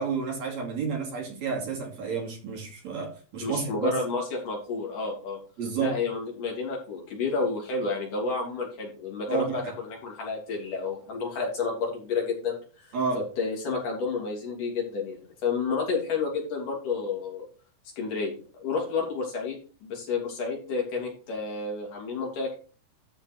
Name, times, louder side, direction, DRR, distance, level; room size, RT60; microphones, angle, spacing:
voice 1, 0.0-3.9 5.6-6.0 9.3-9.7 12.9-13.2, right 5 dB, 60° right, -1 dB, 3.7 m, -30 dB
voice 2, 3.4-5.4 5.8-17.4 18.0-22.5, left 4 dB, 75° left, -2 dB, 4.7 m, -30 dB
12.5 x 4.5 x 4.6 m, 0.38 s
omnidirectional pair, 3.7 m